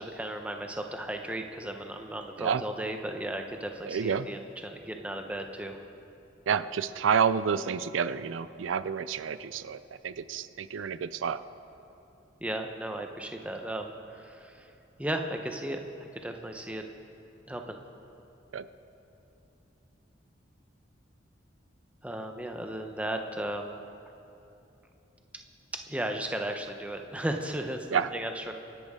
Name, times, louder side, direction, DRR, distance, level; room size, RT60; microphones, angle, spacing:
voice 1, 0.0-5.8 12.4-14.7 15.0-16.8 17.5-17.8 22.0-23.8 25.9-28.5, right 1 dB, 5° right, 4 dB, 0.8 m, -35 dB
voice 2, 3.9-4.3 6.5-11.4 18.5-18.7 27.9-28.1, right 7 dB, 85° right, 14 dB, 0.4 m, -29 dB
25.0 x 10.5 x 3.7 m, 2.9 s
head